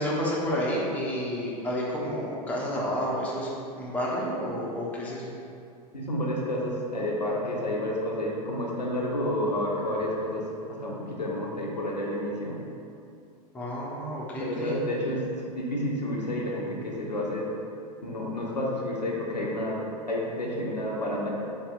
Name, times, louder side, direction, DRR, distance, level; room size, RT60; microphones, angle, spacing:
voice 1, 0.0-3.5 3.8-5.3 13.5-14.8, equal, 5° left, -5 dB, 0.5 m, -30 dB
voice 2, 5.9-12.6 14.4-17.5 18.0-19.8 20.1-21.3, left 1 dB, 85° left, -3 dB, 0.5 m, -30 dB
3.5 x 2.7 x 2.3 m, 2.5 s
figure-of-eight pair, 90°, 21 cm